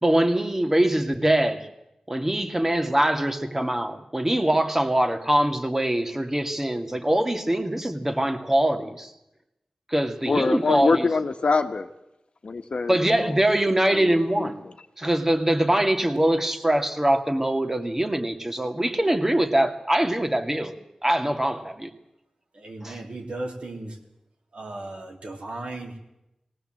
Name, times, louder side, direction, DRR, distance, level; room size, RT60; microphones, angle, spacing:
voice 1, 0.0-1.7 2.1-9.1 9.9-11.1 12.9-14.6 15.0-20.7 21.0-21.9 22.8-23.0, right 1 dB, 20° right, 6 dB, 2.2 m, -23 dB
voice 2, 10.3-11.9 12.4-13.4 13.9-14.7, left 4 dB, 65° left, 7 dB, 1.3 m, -25 dB
voice 3, 22.5-24.0 24.5-26.0, right 2 dB, 70° right, 1 dB, 3.4 m, -36 dB
19.0 x 18.0 x 7.8 m, 0.87 s
cardioid pair, 40°, 2 cm